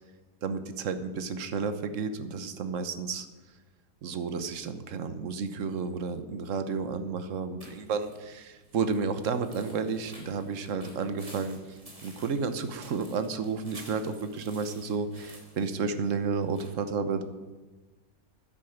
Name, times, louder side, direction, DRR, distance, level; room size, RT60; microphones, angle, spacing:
voice 1, 0.4-3.3 4.0-17.2, right 5 dB, 55° right, 10 dB, 1.2 m, -32 dB
sound 1, 7.6-16.7, right 1 dB, 20° right, 3.0 m, -52 dB
10.5 x 10.0 x 7.9 m, 1.2 s
omnidirectional pair, 1.8 m